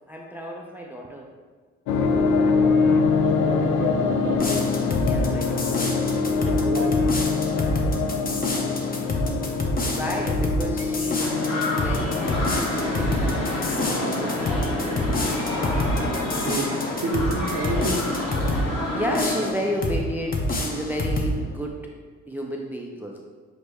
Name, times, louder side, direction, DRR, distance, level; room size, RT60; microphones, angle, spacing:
voice 1, 0.1-1.3 5.0-6.0 6.3-6.9 7.3-8.1 9.2-14.8 16.7-16.8 18.6-21.8 22.3-23.2, equal, 5° right, 0 dB, 0.3 m, -33 dB
sound 1, 1.9-21.6, left 4 dB, 80° left, 0.5 m, -26 dB
voice 2, 3.2-4.6 6.4-7.0 16.3-16.7 17.0-18.1, right 2 dB, 45° right, 2 dB, 0.7 m, -29 dB
sound 2, 4.3-18.7 19.1-20.0 20.3-21.4, left 2 dB, 30° left, 0.6 m, -28 dB
sound 3, 11.2-19.5, left 1 dB, 55° left, 1.1 m, -28 dB
6.0 x 2.1 x 3.3 m, 1.5 s
cardioid pair, 90°, 30 cm